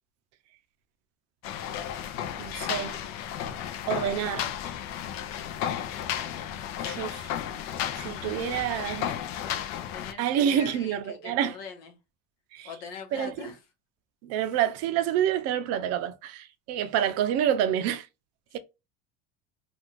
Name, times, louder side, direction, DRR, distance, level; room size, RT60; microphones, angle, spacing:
sound 1, 1.4-10.1, left 10 dB, 65° left, 0.5 m, -33 dB
voice 1, 2.4-3.0 3.9-4.5 6.8-7.4 8.0-9.1 10.2-11.6 12.5-12.7 13.1-13.3 14.2-18.1, right 10 dB, 60° right, 0.5 m, -28 dB
voice 2, 5.5-5.9 9.4-12.0 12.6-13.6, left 6 dB, 85° left, 1.0 m, -42 dB
2.5 x 2.3 x 3.0 m
supercardioid pair, 110°, 29 cm